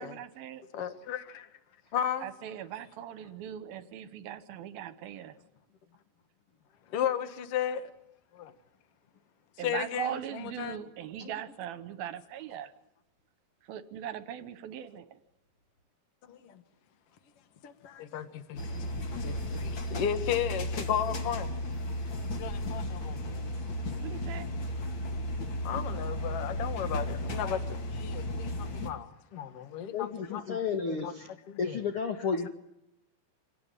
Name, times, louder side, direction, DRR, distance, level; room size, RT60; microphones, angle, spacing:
voice 1, 0.0-0.8 2.2-5.4 9.6-12.7 13.6-15.2 24.0-24.5, right 10 dB, 70° right, 2.6 m, -40 dB
voice 2, 0.7-1.5 1.9-2.3 6.9-7.9 8.3-8.5 9.6-10.8 11.2-11.3 16.3-16.6 17.6-21.5 22.4-23.5 25.6-30.6 30.9-31.1 31.5-31.8, left 9 dB, 60° left, 1.6 m, -35 dB
sound 1, 18.6-28.9, left 1 dB, 35° left, 2.0 m, -34 dB
voice 3, 29.9-31.3 31.6-32.5, left 5 dB, 90° left, 1.2 m, -32 dB
26.5 x 18.5 x 9.1 m
omnidirectional pair, 5.1 m